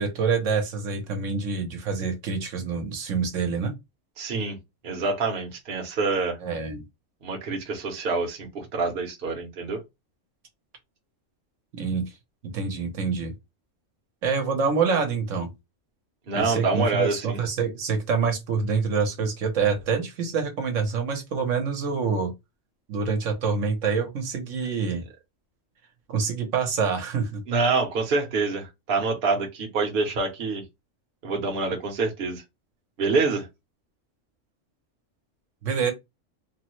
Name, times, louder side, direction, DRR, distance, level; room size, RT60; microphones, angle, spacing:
voice 1, 0.0-3.7 6.4-6.8 11.7-12.1 12.4-13.3 14.2-15.5 16.3-22.3 22.9-25.0 26.1-27.4 35.6-35.9, right 5 dB, 80° right, 1.1 m, -26 dB
voice 2, 4.2-4.6 4.8-6.4 7.2-9.8 16.3-17.4 27.5-30.6 31.2-32.4 33.0-33.5, right 3 dB, 50° right, 0.9 m, -26 dB
3.3 x 2.0 x 2.9 m
omnidirectional pair, 1.3 m